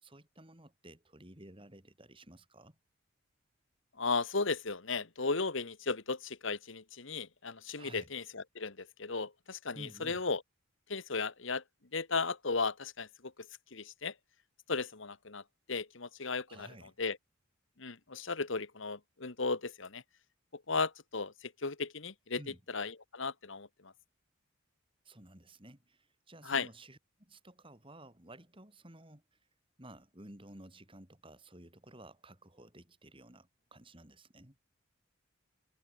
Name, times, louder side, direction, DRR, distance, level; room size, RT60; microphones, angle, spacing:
voice 1, 0.0-2.8 7.8-8.1 9.7-10.2 16.5-16.9 22.4-22.6 25.0-29.4 29.8-34.6, right 1 dB, 25° right, 3.8 m, -53 dB
voice 2, 4.0-10.4 10.9-11.6 11.9-14.1 14.7-15.4 15.7-16.7 17.0-17.2 17.8-20.0 20.5-22.4 22.7-23.9 26.4-26.7, left 4 dB, 60° left, 1.4 m, -35 dB
head